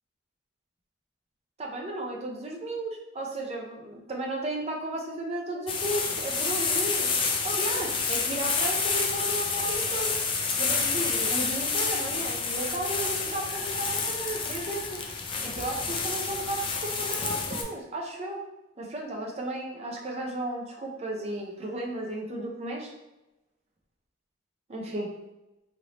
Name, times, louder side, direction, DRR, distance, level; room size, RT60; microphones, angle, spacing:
voice 1, 1.6-7.1 7.4-10.2 10.6-14.8 15.4-18.4 18.8-22.9 24.7-25.1, right 1 dB, 35° right, 0 dB, 0.5 m, -34 dB
sound 1, 5.7-17.6, left 4 dB, 30° left, 0.3 m, -29 dB
3.2 x 2.6 x 2.9 m, 0.99 s
head